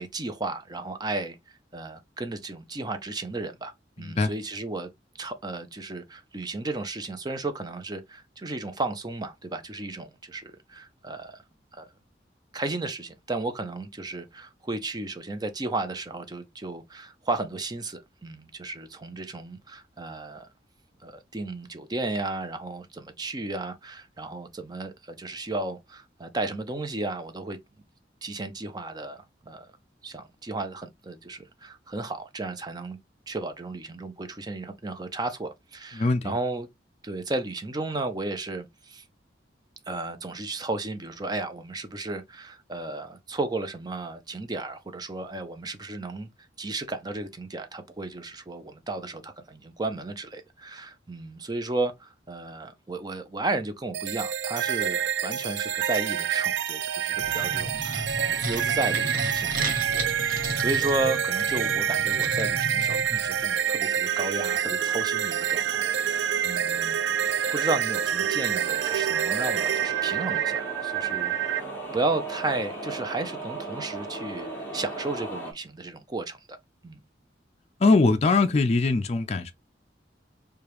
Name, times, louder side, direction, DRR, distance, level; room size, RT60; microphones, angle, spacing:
voice 1, 0.0-4.9 5.2-11.4 11.7-11.9 12.5-20.5 21.0-27.6 28.2-29.7 30.0-33.0 33.3-36.7 37.0-39.0 39.9-46.3 46.6-67.0 67.3-74.5 74.7-76.6 76.8-77.0, right 2 dB, 20° right, 0.5 m, -34 dB
voice 2, 4.0-4.3 35.9-36.3 77.8-79.5, left 3 dB, 35° left, 0.4 m, -22 dB
sound 1, 53.9-71.6, right 9 dB, 85° right, 0.4 m, -27 dB
sound 2, 57.1-63.4, right 1 dB, 50° right, 1.1 m, -34 dB
sound 3, 63.1-75.5, right 2 dB, 10° left, 1.2 m, -38 dB
4.9 x 2.3 x 2.9 m
head